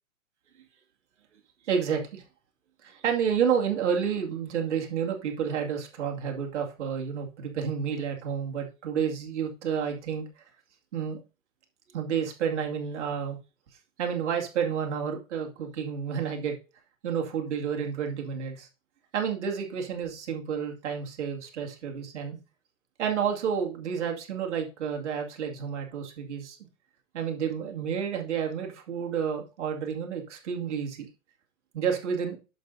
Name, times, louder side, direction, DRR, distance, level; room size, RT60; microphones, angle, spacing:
voice 1, 1.6-2.2 2.8-10.3 10.9-11.2 11.9-13.4 14.0-16.5 17.0-18.7 19.1-22.4 23.0-26.6 27.1-31.1 31.7-32.4, right 7 dB, 60° right, 2.4 m, -30 dB
11.0 x 6.9 x 2.7 m
figure-of-eight pair, 110°, 40 cm